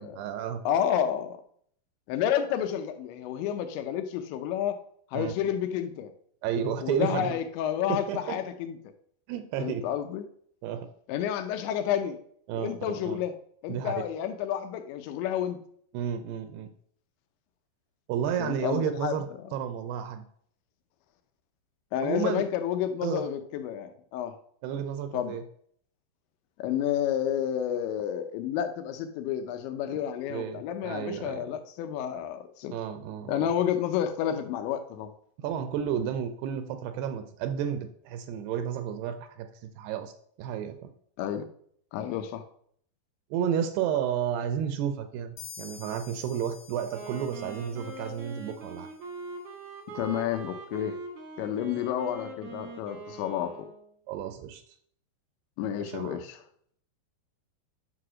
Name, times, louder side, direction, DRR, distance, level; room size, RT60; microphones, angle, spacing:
voice 1, 0.0-0.7 5.1-5.3 6.4-7.3 7.9-8.4 9.3-9.8 10.6-10.9 12.5-13.2 13.7-13.9 15.9-16.7 18.1-19.3 19.5-20.3 22.0-22.4 23.0-23.2 24.6-25.4 30.3-31.4 32.7-33.5 35.4-40.1 40.4-40.9 43.3-48.9 51.6-51.7 54.1-54.6 55.8-56.2, right 8 dB, 80° right, 9 dB, 2.5 m, -32 dB
voice 2, 0.7-1.4 2.1-4.8 5.1-6.1 6.8-8.9 9.6-10.3 11.1-12.2 12.5-13.3 13.6-15.6 18.4-19.5 21.9-24.3 25.1-25.4 26.6-32.7 33.3-35.1 41.2-41.5 41.9-42.4 49.9-51.0 51.4-53.5 55.6-56.4, left 10 dB, 85° left, 8 dB, 3.2 m, -30 dB
sound 1, 45.4-49.0, left 7 dB, 70° left, 2.8 m, -49 dB
Wind instrument woodwind instrument, 46.8-54.0, right 3 dB, 55° right, 1.3 m, -42 dB
10.0 x 4.9 x 6.2 m, 0.64 s
omnidirectional pair, 5.1 m